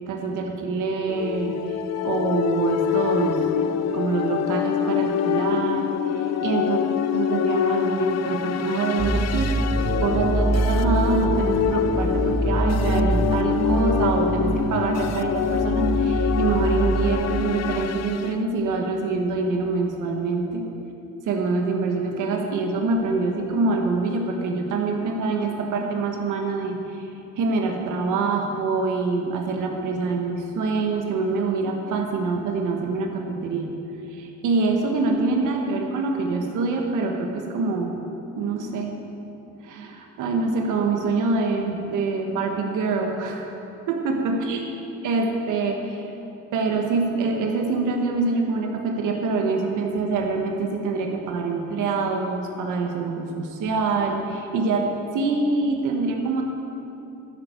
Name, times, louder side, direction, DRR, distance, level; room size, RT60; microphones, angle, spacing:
voice 1, 0.1-3.4 3.7-6.8 7.1-9.6 10.0-20.7 21.3-27.1 27.4-33.7 34.1-37.9 38.3-38.9 39.6-43.6 43.9-44.6 45.0-46.1 46.5-56.4, right 3 dB, 85° right, 2 dB, 1.6 m, -25 dB
sound 1, 1.1-18.3, left 9 dB, 60° left, 0.6 m, -25 dB
sound 2, 9.0-17.1, right 2 dB, 10° right, 1.4 m, -24 dB
12.0 x 11.0 x 4.6 m, 2.9 s
cardioid pair, 90°, 30 cm